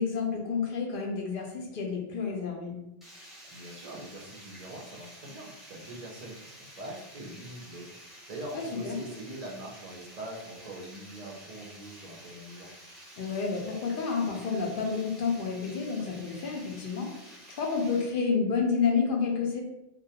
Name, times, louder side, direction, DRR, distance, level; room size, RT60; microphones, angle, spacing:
voice 1, 0.0-2.8 8.5-9.0 13.2-19.6, left 5 dB, 60° left, 0 dB, 0.7 m, -30 dB
Water, 3.0-18.0, equal, ahead, 0.8 m, -50 dB
voice 2, 3.5-7.9 8.3-12.7, right 1 dB, 55° right, -1 dB, 0.4 m, -43 dB
2.3 x 2.1 x 2.7 m, 0.86 s
omnidirectional pair, 1.1 m